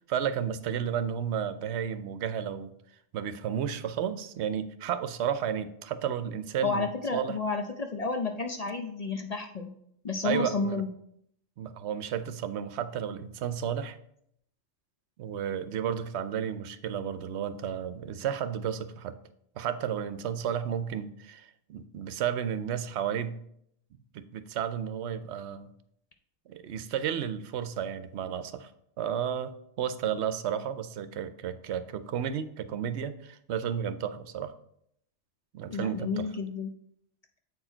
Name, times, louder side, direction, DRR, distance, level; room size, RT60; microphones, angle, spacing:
voice 1, 0.0-2.7 3.1-7.3 10.2-10.8 11.6-14.0 15.2-19.2 19.6-23.4 24.1-25.7 26.5-28.7 29.0-34.5 35.5-36.3, right 8 dB, 70° right, 12 dB, 0.8 m, -32 dB
voice 2, 6.6-9.7 10.0-10.9 35.7-36.7, left 4 dB, 45° left, 4 dB, 0.5 m, -31 dB
8.0 x 4.5 x 4.4 m, 0.71 s
omnidirectional pair, 1.2 m